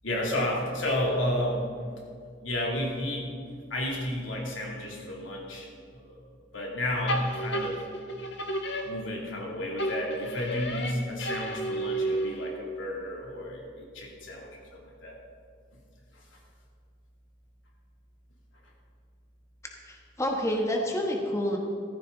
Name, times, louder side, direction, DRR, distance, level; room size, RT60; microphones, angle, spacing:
voice 1, 0.0-1.6 2.4-3.3 3.7-6.3 6.5-7.8 8.8-15.2 16.1-16.2, left 1 dB, 85° left, -1 dB, 2.7 m, -32 dB
sound 1, 7.1-9.4 9.8-12.6, right 1 dB, 65° left, 1.4 m, -32 dB
voice 2, 19.8-21.6, equal, 15° left, 1 dB, 1.2 m, -28 dB
14.5 x 13.5 x 3.9 m, 2.2 s
head